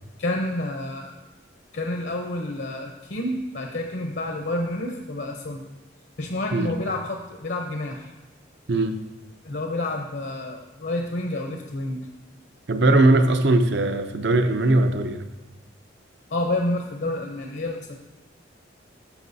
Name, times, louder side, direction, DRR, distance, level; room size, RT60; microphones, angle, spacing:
voice 1, 0.2-1.2 1.7-5.7 6.2-8.1 9.4-12.0 16.3-17.9, left 1 dB, 60° left, 2 dB, 0.8 m, -29 dB
voice 2, 8.7-9.0 12.7-15.2, right 2 dB, 65° right, 8 dB, 0.6 m, -20 dB
13.0 x 6.0 x 2.7 m, 1.1 s
head